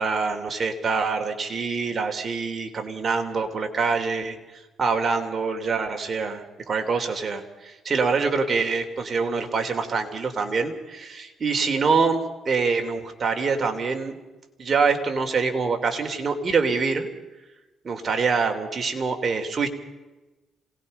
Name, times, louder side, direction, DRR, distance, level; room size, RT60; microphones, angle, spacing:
voice 1, 0.0-4.4 4.8-14.2 14.6-17.1 17.8-19.7, right 4 dB, 40° right, 5 dB, 3.3 m, -25 dB
27.0 x 19.0 x 5.5 m, 1.1 s
cardioid pair, 90°, 0 cm